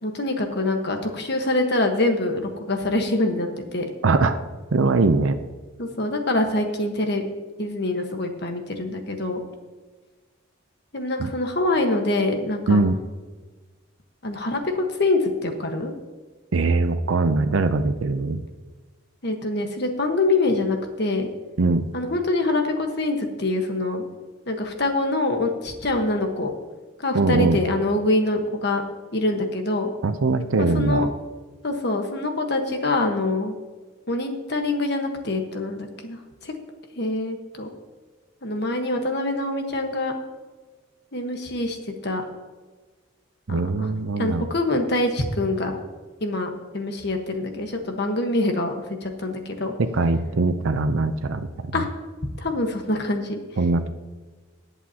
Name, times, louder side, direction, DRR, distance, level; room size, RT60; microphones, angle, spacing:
voice 1, 0.0-3.9 5.8-7.3 7.6-9.4 10.9-12.8 14.2-15.9 19.2-21.3 21.9-24.0 24.5-26.5 27.0-28.8 29.1-29.9 30.6-31.1 31.6-33.5 34.1-36.2 36.4-36.5 36.9-37.7 38.4-40.1 41.1-41.8 42.0-42.2 43.5-43.9 44.2-45.8 46.2-48.7 49.0-49.7 51.7-51.9 52.4-53.4, left 2 dB, 55° left, 4 dB, 1.4 m, -25 dB
voice 2, 4.0-4.4 4.7-5.4 11.2-11.3 12.7-13.0 16.5-18.4 21.6-21.8 27.1-27.6 30.0-31.1 43.5-44.5 49.8-51.5 53.6-53.9, right 3 dB, 75° right, 9 dB, 0.6 m, -21 dB
18.5 x 8.2 x 2.9 m, 1.3 s
head